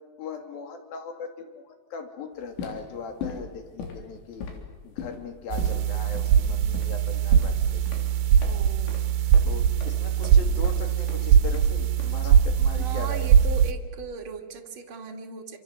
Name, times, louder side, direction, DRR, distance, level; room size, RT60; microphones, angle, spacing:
voice 1, 0.2-4.5 4.8-8.2 9.4-13.3, left 5 dB, 55° left, 6 dB, 4.1 m, -39 dB
sound 1, 2.4-12.6, left 5 dB, 75° left, 5.5 m, -40 dB
sound 2, 5.5-13.7, right 8 dB, 70° right, 3.2 m, -21 dB
voice 2, 8.4-9.0 10.2-10.5 12.8-15.6, right 5 dB, 35° right, 2 dB, 2.6 m, -38 dB
28.0 x 26.5 x 7.6 m, 1.3 s
omnidirectional pair, 5.2 m